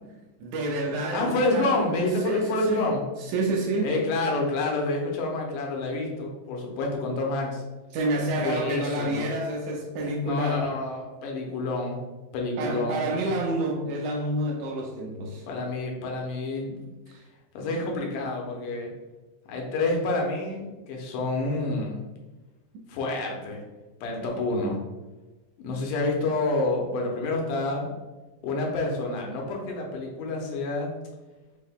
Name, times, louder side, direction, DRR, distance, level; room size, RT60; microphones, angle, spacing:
voice 1, 0.4-1.8 2.3-2.9 3.3-4.0 7.9-10.7 12.6-15.4 17.1-17.2, right 1 dB, 80° right, 0 dB, 1.9 m, -28 dB
voice 2, 1.1-3.0 3.8-7.6 8.3-9.3 10.2-12.0 12.3-13.3 15.5-16.8 17.5-18.9 19.5-22.0 22.9-23.6 24.0-24.8 25.6-27.9 28.4-30.9, left 2 dB, 80° left, 0 dB, 2.2 m, -28 dB
5.3 x 2.1 x 3.4 m, 1.2 s
omnidirectional pair, 3.8 m